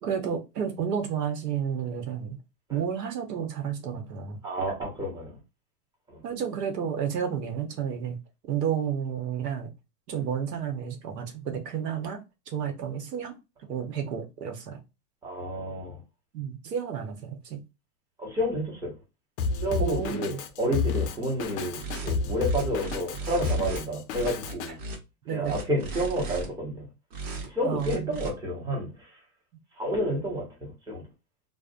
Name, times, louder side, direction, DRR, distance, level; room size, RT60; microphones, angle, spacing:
voice 1, 0.0-2.4 2.7-4.4 6.2-8.2 8.5-9.7 10.1-12.2 12.5-13.4 13.7-14.8 16.3-17.6 19.8-20.4 25.2-25.5 27.6-28.2, right 8 dB, 85° right, 0.9 m, -31 dB
voice 2, 4.4-5.3 6.1-6.2 15.2-16.0 18.2-18.9 19.5-20.3 20.6-24.8 25.3-26.9 27.5-29.1 29.8-31.1, equal, 10° right, 0.7 m, -30 dB
Drum kit, 19.4-24.7, left 4 dB, 50° left, 0.5 m, -30 dB
sound 1, 21.8-22.1 22.4-23.8 24.1-25.0 25.4-26.5 27.1-27.5 27.8-28.3, right 3 dB, 65° right, 1.1 m, -36 dB
2.4 x 2.0 x 2.4 m
hypercardioid pair, 130°, 47 cm